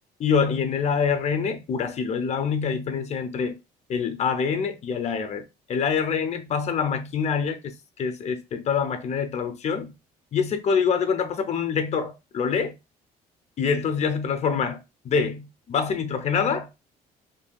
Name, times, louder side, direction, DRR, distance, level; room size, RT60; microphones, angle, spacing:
voice 1, 0.2-3.6 3.9-9.9 10.3-12.7 13.6-16.8, left 6 dB, 40° left, 0.6 m, -25 dB
2.7 x 2.6 x 2.2 m
cardioid pair, 110°, 17 cm